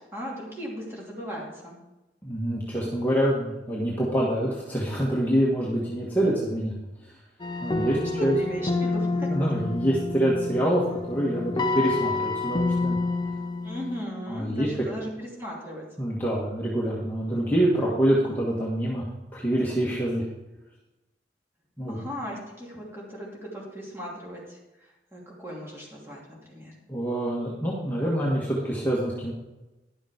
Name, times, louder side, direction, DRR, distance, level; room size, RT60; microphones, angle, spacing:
voice 1, 0.1-1.8 8.2-9.3 13.6-15.8 21.9-24.6 25.1-26.7, equal, 15° right, -4 dB, 2.9 m, -37 dB
voice 2, 2.2-6.7 7.6-8.4 9.3-13.0 14.3-14.7 16.0-19.0 19.3-20.2 21.8-22.0 26.9-29.3, right 1 dB, 10° left, -6 dB, 1.6 m, -26 dB
sound 1, 7.4-14.0, left 3 dB, 25° left, 0.6 m, -28 dB
11.0 x 7.1 x 5.1 m, 1.0 s
head